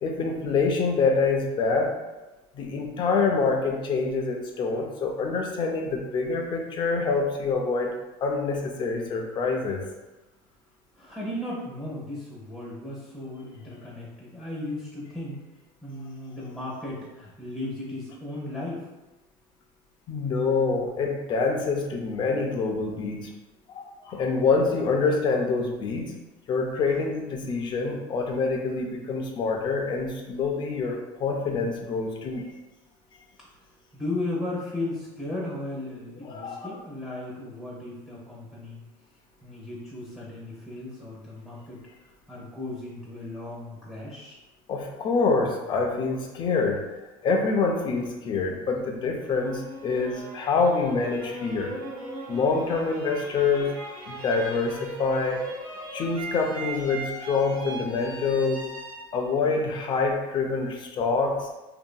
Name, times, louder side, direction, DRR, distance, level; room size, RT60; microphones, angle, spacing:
voice 1, 0.0-2.0 2.5-7.9 8.2-9.8 20.1-23.3 23.7-26.1 26.5-32.4 36.2-36.8 44.7-46.8 47.2-51.7 52.3-53.8 54.1-55.5 55.9-58.7 59.1-61.6, left 4 dB, 40° left, 2 dB, 0.5 m, -26 dB
voice 2, 11.0-15.4 15.8-18.9 33.9-38.8 39.4-41.8 42.3-44.4, left 2 dB, 5° right, -6 dB, 0.9 m, -35 dB
sound 1, 49.2-60.2, right 2 dB, 45° right, 1.4 m, -39 dB
2.8 x 2.7 x 2.2 m, 1.1 s
cardioid pair, 125°, 12 cm